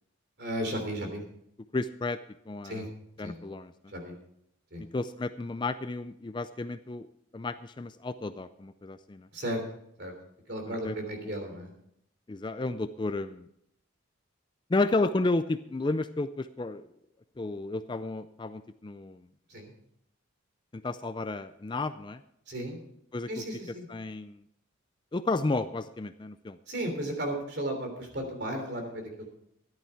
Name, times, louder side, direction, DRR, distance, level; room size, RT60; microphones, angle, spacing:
voice 1, 0.4-1.2 2.6-2.9 3.2-3.3 3.9-4.1 4.7-4.8 9.3-9.6 10.0-10.1 10.5-11.7 19.5-19.7 22.5-22.8 23.3-23.9 26.7-29.3, right 1 dB, 50° right, 4 dB, 3.3 m, -34 dB
voice 2, 1.7-2.2 2.5-2.9 3.2-3.7 4.9-7.1 7.3-9.3 10.7-10.9 12.3-13.5 14.7-16.9 17.4-19.3 20.7-22.2 23.1-23.4 23.9-24.4 25.1-26.6, left 2 dB, 20° left, 12 dB, 0.4 m, -32 dB
13.5 x 11.0 x 4.5 m, 0.73 s
head